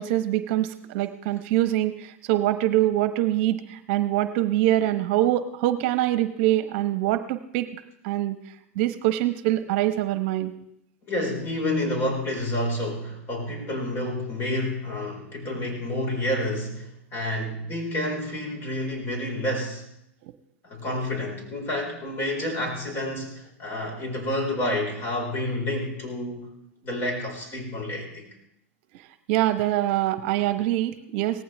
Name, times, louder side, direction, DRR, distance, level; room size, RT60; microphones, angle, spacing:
voice 1, 0.0-8.4 8.8-10.5 29.3-31.4, right 14 dB, 55° right, 11 dB, 0.9 m, -24 dB
voice 2, 11.1-19.9 20.6-26.5 26.8-28.4, left 1 dB, 30° left, 1 dB, 4.6 m, -29 dB
18.0 x 14.5 x 3.4 m, 0.76 s
hypercardioid pair, 115°, 7 cm